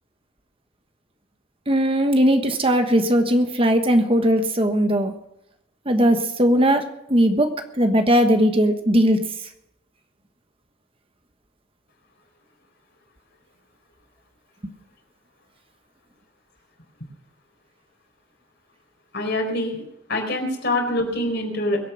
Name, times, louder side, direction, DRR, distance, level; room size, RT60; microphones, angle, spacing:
voice 1, 1.7-5.1 5.9-7.5 7.8-9.2, equal, 25° right, 6 dB, 1.3 m, -19 dB
voice 2, 19.1-19.8 20.1-21.8, left 1 dB, 55° left, 3 dB, 4.3 m, -24 dB
22.0 x 8.7 x 6.1 m, 0.83 s
head